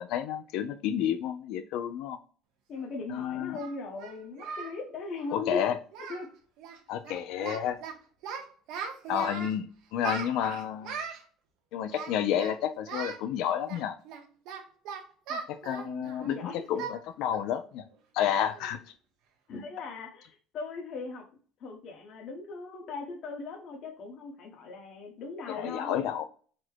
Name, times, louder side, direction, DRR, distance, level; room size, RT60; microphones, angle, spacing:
voice 1, 0.0-2.2 3.1-3.6 5.3-5.8 6.9-7.8 9.1-11.0 11.7-13.9 15.5-17.8 18.1-18.8 25.5-26.2, left 10 dB, 75° left, 9 dB, 0.4 m, -30 dB
voice 2, 2.7-5.7 6.1-6.3 9.4-9.6 15.3-15.4 15.8-16.6 19.5-21.2 21.6-26.1, left 3 dB, 55° left, 0 dB, 1.0 m, -39 dB
Singing, 2.7-2.8 3.5-4.8 5.0-5.2 5.5-5.7 5.9-6.3 6.6-6.8 7.0-7.9 8.2-9.6 10.0-11.2 11.9-12.6 12.9-13.2 13.7-16.3 16.8-17.0 17.3-17.5 17.9-18.0 18.5-18.8, right 6 dB, 75° right, 1.0 m, -39 dB
4.2 x 2.1 x 4.4 m, 0.42 s
cardioid pair, 130°, 0 cm